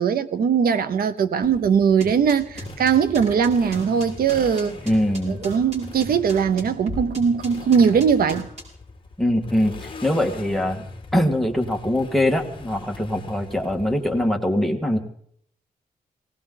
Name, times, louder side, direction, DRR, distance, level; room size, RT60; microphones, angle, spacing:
voice 1, 0.0-4.7 5.3-8.5, right 6 dB, 90° right, 0.8 m, -20 dB
Motorcycle, 1.4-14.3, left 3 dB, 35° left, 1.7 m, -41 dB
sound 1, 2.0-8.6, equal, 50° right, 6.0 m, -35 dB
voice 2, 4.9-5.4 9.2-10.8 11.1-15.0, left 1 dB, ahead, 1.8 m, -22 dB
19.0 x 18.0 x 3.9 m
wide cardioid pair, 125°, 15 cm